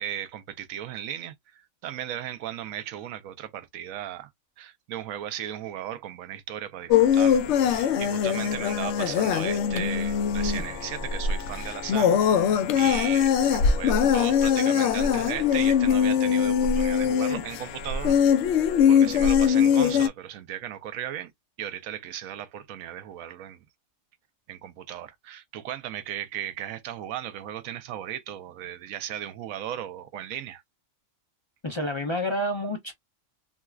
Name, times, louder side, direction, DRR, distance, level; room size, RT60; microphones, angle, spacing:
voice 1, 0.0-4.3 4.6-12.2 12.8-18.2 18.9-21.3 21.6-23.6 24.5-30.6, right 11 dB, 90° right, 1.0 m, -36 dB
sound 1, 6.9-20.1, left 7 dB, 65° left, 0.8 m, -22 dB
voice 2, 31.6-32.9, left 1 dB, 35° left, 0.4 m, -29 dB
3.9 x 2.2 x 2.3 m
omnidirectional pair, 1.4 m